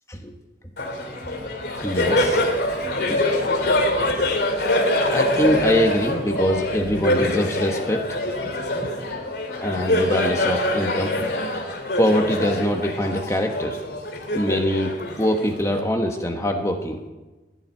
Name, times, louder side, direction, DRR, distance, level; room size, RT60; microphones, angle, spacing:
Laughter, 0.8-15.8, left 1 dB, 65° left, 2.8 m, -24 dB
voice 1, 1.8-2.5 2.9-3.3 5.1-8.9 9.6-11.3 12.0-13.8 14.3-14.9 15.2-17.0, equal, 15° left, 3 dB, 1.2 m, -24 dB
16.5 x 7.4 x 9.7 m, 1.2 s
head